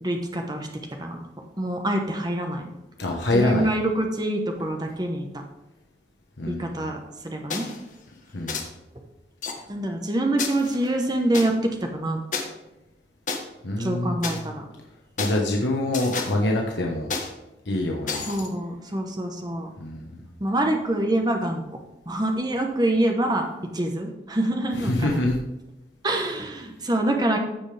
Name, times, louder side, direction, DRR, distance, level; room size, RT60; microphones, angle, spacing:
voice 1, 0.0-0.7 1.0-1.2 1.6-2.7 3.3-5.4 6.5-7.0 7.2-7.7 9.7-12.2 13.8-14.6 18.3-19.7 20.4-21.8 22.1-23.5 23.7-25.2 26.0-27.4, right 1 dB, 20° right, 3 dB, 1.1 m, -25 dB
voice 2, 3.0-3.7 6.4-6.7 8.3-8.6 13.6-14.5 15.2-17.1 17.7-18.2 19.8-20.0 24.7-25.4, left 1 dB, 85° left, 0 dB, 1.2 m, -25 dB
sound 1, 7.5-7.8 8.5-8.6 9.4-9.5 10.4-11.5 12.3-12.4 13.3-13.4 14.2-14.4 15.2-15.4 15.9-16.4 17.1-17.3 18.1-18.5, left 4 dB, 45° left, 1.3 m, -30 dB
15.5 x 5.2 x 3.4 m, 0.99 s
head